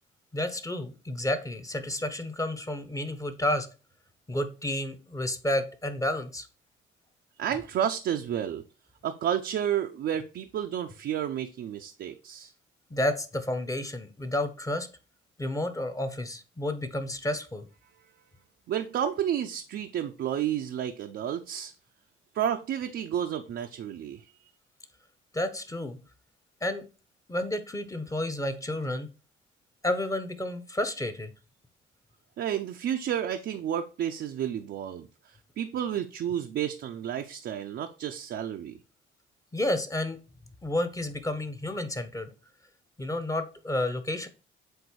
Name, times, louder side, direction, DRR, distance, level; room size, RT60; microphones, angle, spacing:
voice 1, 0.3-3.7 4.3-6.5 12.9-14.9 15.4-17.6 25.3-26.0 26.6-26.9 27.3-29.1 29.8-31.3 39.5-40.2 40.6-42.3 43.0-44.3, left 1 dB, 15° left, 1.0 m, -31 dB
voice 2, 7.4-8.6 9.0-12.5 18.7-21.7 22.3-24.2 32.4-35.1 35.6-38.8, right 9 dB, 65° right, 0.6 m, -31 dB
7.8 x 2.6 x 4.6 m
cardioid pair, 90°, 20 cm